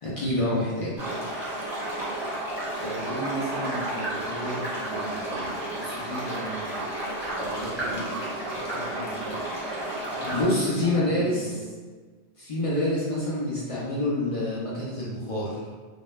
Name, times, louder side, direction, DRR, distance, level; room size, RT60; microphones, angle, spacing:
voice 1, 0.0-0.9 10.3-11.5 12.4-15.6, left 1 dB, 55° left, -6 dB, 0.3 m, -27 dB
sound 1, 1.0-10.4, right 1 dB, 30° right, 0.7 m, -32 dB
voice 2, 2.8-6.9 7.3-8.1 8.5-9.4 10.0-11.6, right 1 dB, 25° left, -8 dB, 0.8 m, -36 dB
2.1 x 2.1 x 3.1 m, 1.4 s
omnidirectional pair, 1.2 m